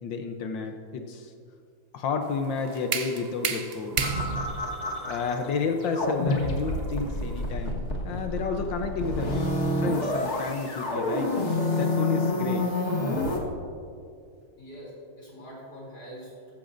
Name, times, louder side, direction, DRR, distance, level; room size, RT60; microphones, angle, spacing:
voice 1, 0.0-1.3 1.9-4.0 5.1-7.8 8.0-9.3 9.8-11.3 11.8-12.7, left 4 dB, 80° left, 5 dB, 1.5 m, -31 dB
sound 1, 2.2-8.0, right 5 dB, 55° right, 0.6 m, -34 dB
sound 2, 4.0-5.5 5.8-13.4, left 2 dB, 40° left, 1.7 m, -28 dB
voice 2, 14.6-16.5, equal, 55° left, -5 dB, 3.6 m, -44 dB
16.0 x 14.5 x 2.6 m, 2.4 s
omnidirectional pair, 2.0 m